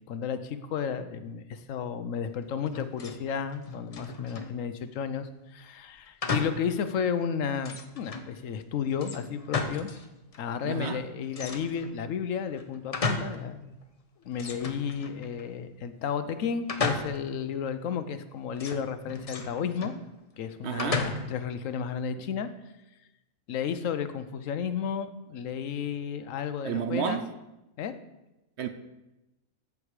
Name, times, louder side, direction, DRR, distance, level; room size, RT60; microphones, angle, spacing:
voice 1, 0.1-9.9 10.4-13.8 14.2-19.9 20.4-22.5 23.5-27.2 27.8-27.9, left 7 dB, 75° left, 1.0 m, -33 dB
sound 1, 2.7-3.2 3.5-4.6 6.2-6.7 7.1-7.2 7.6-8.3 9.0-10.1 10.3-10.4 11.3-12.0 12.5-13.5 13.8-13.9 14.3-15.4 16.7-17.4 18.6-20.0 20.8-21.5, left 3 dB, 35° left, 0.6 m, -34 dB
voice 2, 10.6-11.0 20.6-21.1 26.6-27.3 28.6-28.7, right 7 dB, 60° right, 0.8 m, -31 dB
14.0 x 4.8 x 4.8 m
omnidirectional pair, 1.4 m